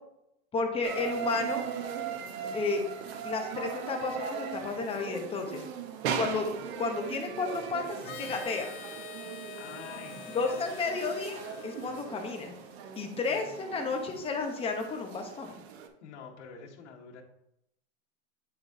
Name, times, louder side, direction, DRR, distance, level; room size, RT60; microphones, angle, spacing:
voice 1, 0.5-1.6 2.5-2.8 3.2-5.6 6.2-6.5 6.8-8.7 10.3-11.4 11.6-12.5 13.0-15.6, left 4 dB, 15° left, 3 dB, 0.9 m, -32 dB
sound 1, 0.8-15.9, right 7 dB, 60° right, 1.0 m, -39 dB
Harmonica, 8.0-12.8, left 7 dB, 30° left, 0.4 m, -46 dB
voice 2, 9.6-10.6 13.3-13.5 16.0-17.2, left 6 dB, 70° left, -2 dB, 1.7 m, -47 dB
9.6 x 4.7 x 2.7 m, 0.80 s
supercardioid pair, 145°, 36 cm